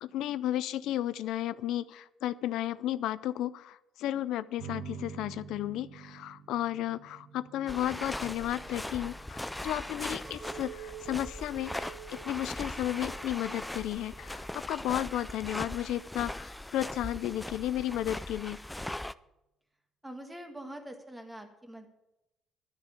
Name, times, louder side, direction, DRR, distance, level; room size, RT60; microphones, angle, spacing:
voice 1, 0.0-18.6, left 13 dB, 80° left, 16 dB, 0.4 m, -33 dB
sound 1, 4.6-15.6, right 6 dB, 90° right, 1.5 m, -50 dB
sound 2, 7.7-19.1, left 1 dB, 5° left, 0.3 m, -40 dB
Chink clink, 10.2-14.6 15.0-15.6, right 9 dB, 35° right, 1.8 m, -49 dB
voice 2, 20.0-21.9, right 1 dB, 10° right, 5 dB, 1.6 m, -44 dB
12.0 x 6.4 x 8.3 m, 0.90 s
cardioid pair, 135°, 0 cm